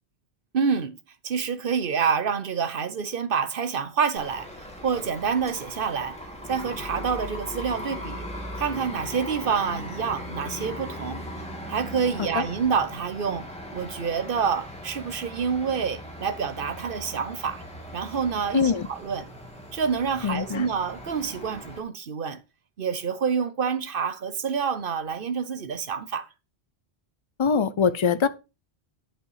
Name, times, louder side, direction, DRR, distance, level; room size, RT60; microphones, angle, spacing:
voice 1, 0.5-1.0 1.2-6.2 6.5-8.3 8.6-11.2 11.7-13.5 13.7-17.6 17.9-19.3 19.7-22.4 22.8-26.3, right 6 dB, 60° right, 1.0 m, -27 dB
sound 1, 4.2-21.8, equal, 5° left, 2.7 m, -39 dB
voice 2, 18.5-18.9 20.2-20.7 27.4-28.3, left 6 dB, 35° left, 0.6 m, -23 dB
11.0 x 5.6 x 4.8 m
omnidirectional pair, 1.1 m